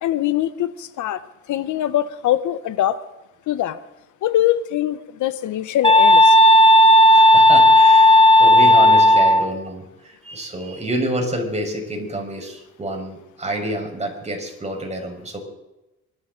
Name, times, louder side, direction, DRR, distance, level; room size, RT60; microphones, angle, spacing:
voice 1, 0.0-1.2 1.5-3.0 3.5-3.8 4.2-6.4, left 12 dB, 80° left, 13 dB, 1.1 m, -22 dB
sound 1, 5.8-9.5, left 1 dB, 15° left, 1.3 m, -11 dB
voice 2, 7.1-15.4, right 1 dB, 20° right, 2 dB, 5.1 m, -28 dB
24.0 x 12.5 x 4.0 m, 0.96 s
cardioid pair, 90°, 30 cm